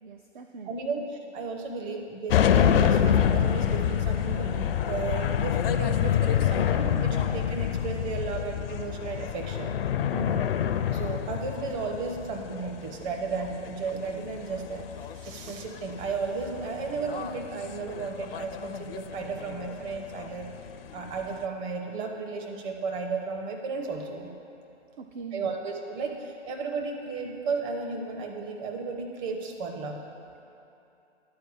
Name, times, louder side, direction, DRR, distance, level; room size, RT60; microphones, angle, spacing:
voice 1, 0.0-0.9 10.1-10.5 25.0-25.5, right 4 dB, 45° right, 5 dB, 0.5 m, -40 dB
voice 2, 0.6-9.7 10.9-20.5 20.9-24.3 25.3-30.0, right 4 dB, 25° right, 2 dB, 0.9 m, -34 dB
sound 1, 2.3-21.5, left 9 dB, 50° left, 0.5 m, -27 dB
10.5 x 4.6 x 7.1 m, 2.8 s
figure-of-eight pair, 125°, 36 cm